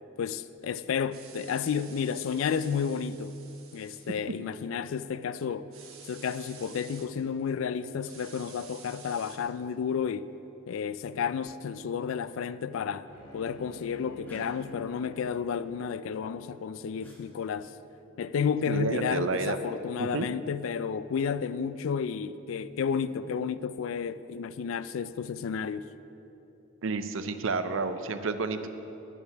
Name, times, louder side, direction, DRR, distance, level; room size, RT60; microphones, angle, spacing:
voice 1, 0.2-3.3 3.7-5.7 6.1-10.3 10.7-17.7 18.2-25.9, left 6 dB, 70° left, 0.3 m, -32 dB
sound 1, 1.1-4.1 5.7-7.1 8.0-9.4, right 6 dB, 80° right, 1.3 m, -50 dB
Bowed string instrument, 13.1-18.2, right 2 dB, 30° left, 1.9 m, -50 dB
sound 2, 14.3-14.5 17.0-17.2 18.9-19.2 20.9-21.4, left 3 dB, 10° left, 1.5 m, -49 dB
voice 2, 18.7-19.6 20.0-20.3 26.8-28.7, right 4 dB, 65° right, 0.6 m, -30 dB
11.0 x 7.2 x 5.8 m
head